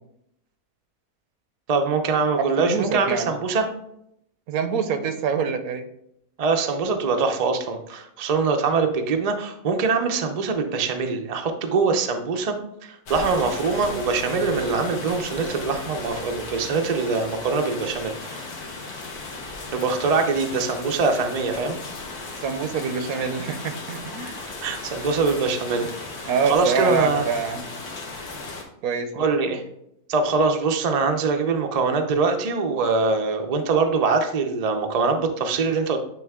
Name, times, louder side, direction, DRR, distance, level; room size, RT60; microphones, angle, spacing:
voice 1, 1.7-3.7 6.4-12.6 12.8-18.4 19.7-21.8 24.5-25.9 26.2-27.2 29.1-29.6 30.1-36.0, right 4 dB, 55° right, 4 dB, 0.4 m, -23 dB
voice 2, 2.6-3.3 4.5-5.8 22.4-24.4 25.7-25.9 26.2-27.6 28.8-29.2, right 5 dB, 75° right, 8 dB, 1.1 m, -26 dB
sound 1, 13.1-28.6, left 3 dB, 80° left, 1.7 m, -36 dB
9.2 x 3.1 x 3.6 m, 0.77 s
omnidirectional pair, 1.6 m